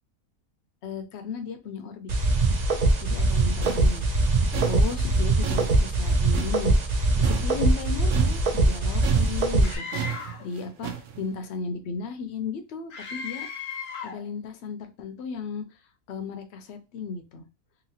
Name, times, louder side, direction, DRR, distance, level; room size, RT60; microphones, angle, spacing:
voice 1, 0.8-2.1 3.0-4.1 4.6-6.7 7.2-9.9 10.4-13.5 14.0-15.8 16.1-17.5, left 5 dB, 60° left, 7 dB, 0.8 m, -35 dB
sound 1, 2.1-9.8, right 2 dB, 85° right, 0.3 m, -22 dB
sound 2, 3.1-8.8 9.0-11.2, right 9 dB, 65° right, 0.8 m, -34 dB
Screaming, 9.6-10.5 12.9-14.3, left 5 dB, 85° left, 1.2 m, -36 dB
2.9 x 2.8 x 2.7 m, 0.28 s
omnidirectional pair, 1.5 m